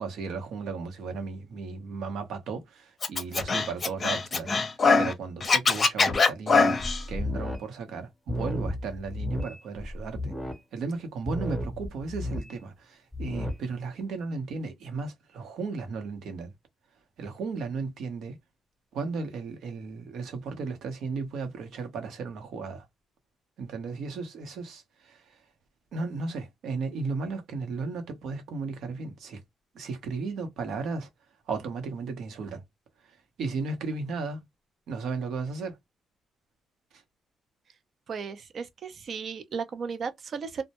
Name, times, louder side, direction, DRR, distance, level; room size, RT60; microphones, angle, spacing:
voice 1, 0.0-4.6 5.0-6.8 7.1-10.3 10.7-16.5 17.2-18.4 18.9-22.9 23.6-25.4 25.9-29.4 29.7-31.1 31.5-32.6 33.0-34.4 34.9-35.8 36.9-37.0, right 4 dB, 75° right, 0.8 m, -35 dB
Scratching (performance technique), 3.0-5.1 5.4-7.0, left 4 dB, 35° left, 0.6 m, -22 dB
sound 1, 6.8-7.6 8.3-10.6 11.3-12.5 13.1-13.5, left 1 dB, 5° right, 0.8 m, -33 dB
voice 2, 38.1-40.6, right 5 dB, 55° right, 0.5 m, -35 dB
2.1 x 2.1 x 2.8 m
cardioid pair, 90°, 0 cm